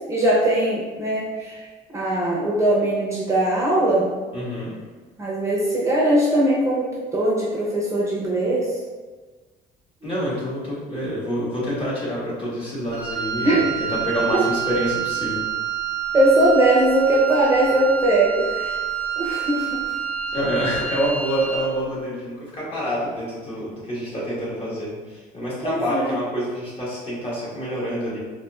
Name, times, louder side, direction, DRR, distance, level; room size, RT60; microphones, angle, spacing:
voice 1, 0.1-1.6 1.9-4.1 5.2-8.7 13.4-13.6 16.1-18.8 19.2-19.7 25.6-26.2, right 1 dB, 15° right, -6 dB, 0.7 m, -20 dB
voice 2, 4.3-4.7 10.0-15.4 20.3-28.2, equal, 30° left, -7 dB, 1.5 m, -27 dB
Wind instrument woodwind instrument, 12.9-21.8, right 8 dB, 70° right, 0.6 m, -28 dB
4.0 x 2.7 x 2.4 m, 1.3 s
cardioid pair, 110°, 17 cm